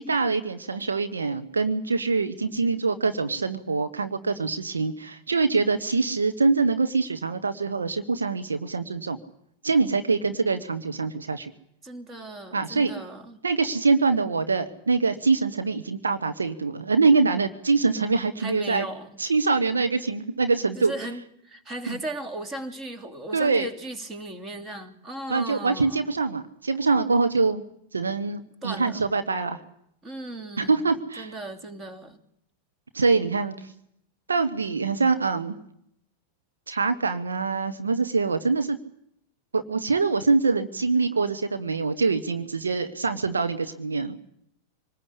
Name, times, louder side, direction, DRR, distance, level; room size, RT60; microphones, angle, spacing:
voice 1, 0.0-9.2 9.6-11.5 12.5-12.9 13.4-18.9 19.2-20.9 21.9-22.0 23.3-23.7 25.3-27.6 27.9-29.6 30.6-31.3 32.9-33.7 34.3-35.6 36.7-38.8 39.5-44.2, right 4 dB, 75° right, 8 dB, 1.2 m, -24 dB
voice 2, 11.8-13.4 18.4-19.1 20.7-26.0 28.6-29.0 30.0-30.9 31.2-32.2, right 2 dB, 20° right, 6 dB, 2.9 m, -36 dB
25.0 x 19.5 x 8.4 m, 0.72 s
figure-of-eight pair, 90°, 0 cm